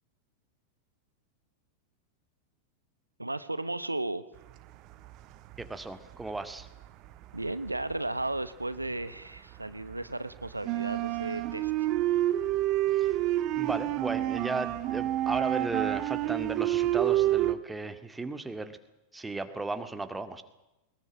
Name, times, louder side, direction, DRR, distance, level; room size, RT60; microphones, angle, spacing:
voice 1, 3.2-4.2 7.3-11.9, right 2 dB, 85° right, 14 dB, 1.0 m, -34 dB
sound 1, 4.9-5.8 6.1-9.0 9.4-17.5, right 14 dB, 40° right, 1.4 m, -28 dB
voice 2, 5.6-6.7 12.9-13.1 13.6-18.8 19.1-20.4, right 3 dB, 10° right, 9 dB, 2.0 m, -35 dB
21.5 x 20.5 x 8.7 m, 0.99 s
figure-of-eight pair, 90°, 0 cm